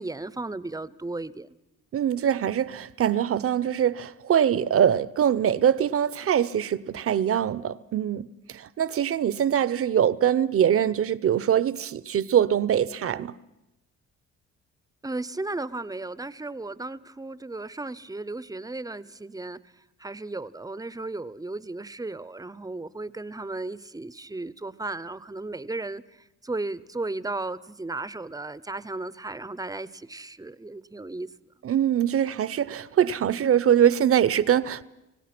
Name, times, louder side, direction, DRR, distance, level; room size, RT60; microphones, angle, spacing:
voice 1, 0.0-1.5 15.0-19.6 20.0-26.0 26.4-31.3, right 2 dB, 10° right, 0.6 m, -35 dB
voice 2, 1.9-13.3 31.6-34.8, right 9 dB, 50° right, 0.7 m, -23 dB
26.0 x 17.0 x 6.0 m
cardioid pair, 90°, 30 cm